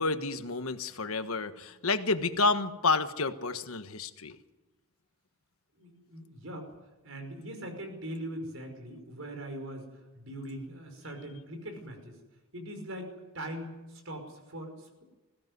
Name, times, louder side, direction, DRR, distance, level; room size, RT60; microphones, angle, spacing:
voice 1, 0.0-4.4, left 3 dB, 90° left, 9 dB, 1.4 m, -29 dB
voice 2, 5.8-6.7 7.0-12.2 12.5-15.0, right 1 dB, 70° right, 5 dB, 5.5 m, -41 dB
21.0 x 16.5 x 9.5 m, 1.1 s
head